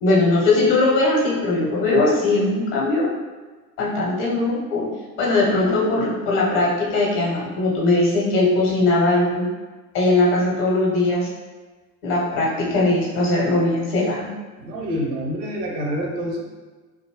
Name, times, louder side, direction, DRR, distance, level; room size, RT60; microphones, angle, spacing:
voice 1, 0.0-3.1 3.8-4.9 5.2-9.5 9.9-11.3 12.0-14.3, left 2 dB, 50° left, -4 dB, 1.1 m, -20 dB
voice 2, 14.6-16.4, equal, 80° right, 0 dB, 0.7 m, -27 dB
2.8 x 2.6 x 2.9 m, 1.3 s
figure-of-eight pair, 65°, 48 cm